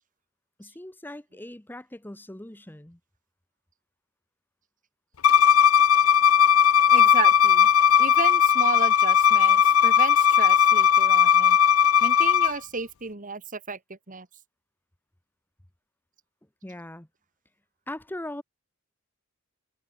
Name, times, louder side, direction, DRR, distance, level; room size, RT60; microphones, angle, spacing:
voice 1, 0.6-3.0 16.6-17.1 17.9-18.4, left 1 dB, 10° left, 0.9 m, -40 dB
Bowed string instrument, 5.2-12.5, left 8 dB, 75° left, 0.6 m, -18 dB
voice 2, 6.9-7.7 8.0-11.6 12.0-14.3, right 4 dB, 40° right, 2.1 m, -33 dB
head